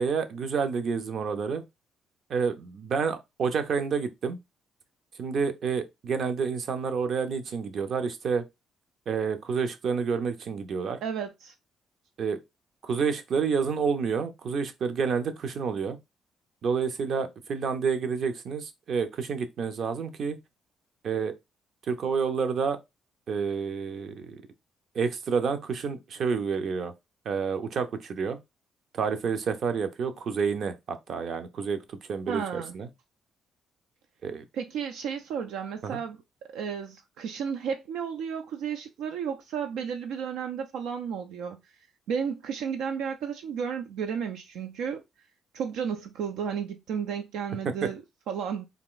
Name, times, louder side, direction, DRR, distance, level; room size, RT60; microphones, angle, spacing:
voice 1, 0.0-1.6 2.3-4.4 5.2-8.4 9.1-11.0 12.2-12.4 12.8-16.0 16.6-20.4 21.0-21.3 21.9-22.8 23.3-24.4 24.9-26.9 27.3-28.4 28.9-32.9 34.2-34.4 35.8-36.0, right 5 dB, 60° right, 0.7 m, -29 dB
voice 2, 11.0-11.5 32.3-32.8 34.5-36.2 36.5-45.0 45.5-48.7, right 7 dB, 90° right, 0.4 m, -33 dB
3.5 x 2.5 x 3.8 m
cardioid pair, 90°, 0 cm